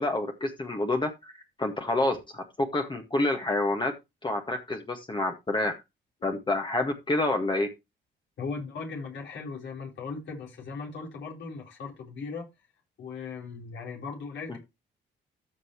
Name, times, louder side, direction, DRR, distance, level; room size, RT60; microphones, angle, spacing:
voice 1, 0.0-1.3 1.6-3.9 4.2-5.8 6.2-7.7 14.5-14.6, left 2 dB, 25° left, 1.8 m, -28 dB
voice 2, 8.4-12.5 13.0-14.6, left 4 dB, 65° left, 4.4 m, -38 dB
14.0 x 5.5 x 3.1 m
cardioid pair, 90°, 20 cm